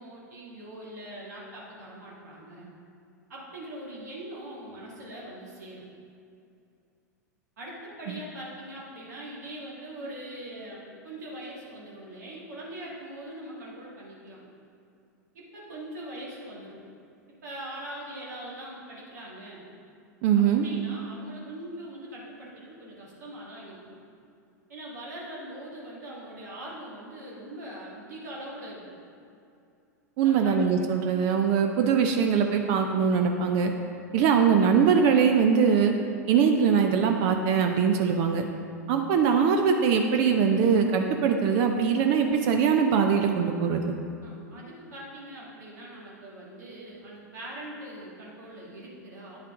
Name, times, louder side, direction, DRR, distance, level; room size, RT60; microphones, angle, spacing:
voice 1, 0.0-2.7 3.3-5.8 7.6-14.4 15.3-16.8 17.4-19.6 20.4-24.0 24.7-28.8 30.2-30.6 44.2-49.5, right 1 dB, 70° right, -5 dB, 1.8 m, -42 dB
voice 2, 20.2-20.6 30.2-33.7 34.1-35.9 36.3-38.5 38.9-43.9, right 6 dB, 50° right, 4 dB, 0.6 m, -22 dB
9.1 x 5.6 x 3.7 m, 2.5 s
figure-of-eight pair, 95°, 9 cm